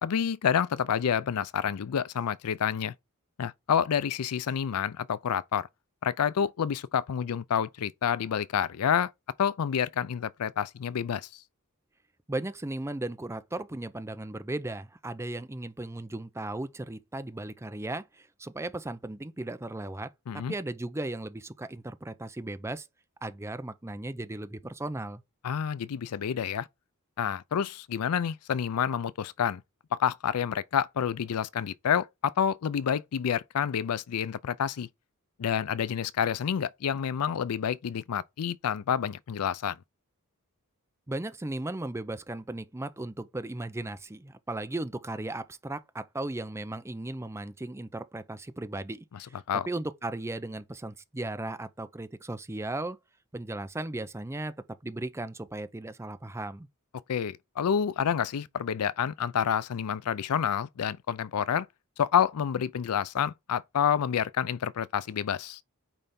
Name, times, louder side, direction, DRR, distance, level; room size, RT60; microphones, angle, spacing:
voice 1, 0.0-2.9 3.4-5.7 6.0-9.1 9.4-11.3 20.3-20.5 25.4-26.7 27.2-29.6 30.0-34.9 35.4-39.8 49.5-49.7 57.1-61.7 62.0-65.6, left 8 dB, 80° left, 0.4 m, -28 dB
voice 2, 12.3-20.1 20.5-22.9 23.2-25.2 41.1-49.4 49.7-53.0 53.3-54.5 54.8-56.7, right 2 dB, 10° right, 0.5 m, -36 dB
8.8 x 3.4 x 4.2 m
head